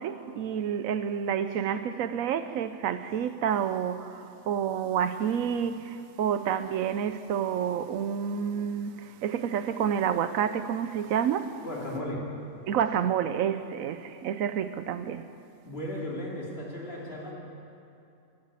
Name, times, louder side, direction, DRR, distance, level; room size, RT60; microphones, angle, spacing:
voice 1, 0.0-11.5 12.7-15.3, right 8 dB, 80° right, 11 dB, 1.0 m, -29 dB
voice 2, 11.6-12.3 15.6-17.3, left 1 dB, 45° left, -5 dB, 3.4 m, -35 dB
13.5 x 11.5 x 8.5 m, 2.6 s
omnidirectional pair, 1.4 m